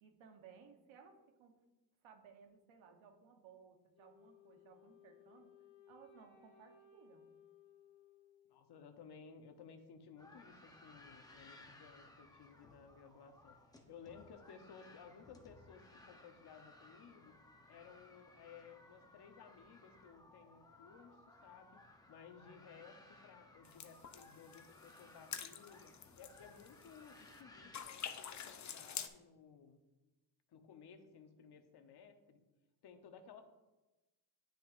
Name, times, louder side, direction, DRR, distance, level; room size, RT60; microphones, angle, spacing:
voice 1, 0.0-1.5 2.0-5.5 5.9-7.3, right 6 dB, 85° right, 4 dB, 1.1 m, -61 dB
Wind instrument woodwind instrument, 3.9-9.0, left 6 dB, 90° left, 1.7 m, -64 dB
voice 2, 8.5-13.6 13.9-17.4 17.7-29.8 30.5-32.4 32.8-33.4, left 6 dB, 55° left, 7 dB, 0.9 m, -58 dB
sound 1, 10.2-27.8, left 2 dB, 10° left, 0.8 m, -61 dB
sound 2, 23.7-27.4 27.7-29.1, left 8 dB, 40° left, 0.6 m, -48 dB
10.0 x 6.1 x 2.5 m, 1.1 s
cardioid pair, 90°, 46 cm